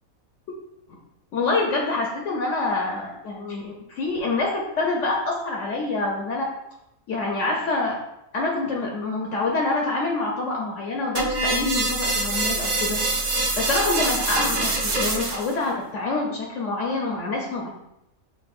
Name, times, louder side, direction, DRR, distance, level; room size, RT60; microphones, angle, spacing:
voice 1, 1.3-6.4 7.1-8.0 8.3-17.7, left 3 dB, 70° left, -1 dB, 0.9 m, -26 dB
sound 1, 11.1-15.5, right 2 dB, 50° right, 0.5 m, -25 dB
6.0 x 2.4 x 2.4 m, 0.84 s
omnidirectional pair, 1.5 m